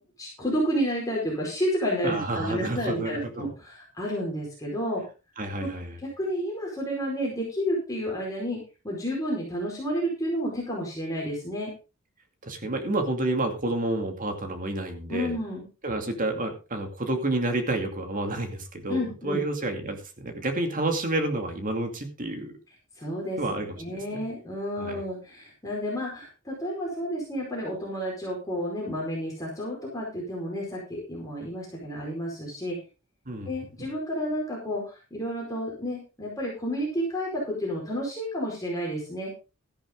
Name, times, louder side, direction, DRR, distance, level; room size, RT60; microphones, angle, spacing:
voice 1, 0.2-5.0 5.6-5.7 6.2-8.6 8.8-11.7 15.1-15.6 18.9-19.4 23.0-23.4 23.8-32.8 33.5-39.3, equal, 15° left, -3 dB, 4.8 m, -30 dB
voice 2, 2.0-3.5 5.4-5.9 12.4-15.4 15.8-22.5 23.4-24.0 24.7-25.0 33.3-33.5, right 2 dB, 40° right, 5 dB, 2.4 m, -29 dB
13.5 x 11.0 x 3.8 m, 0.31 s
head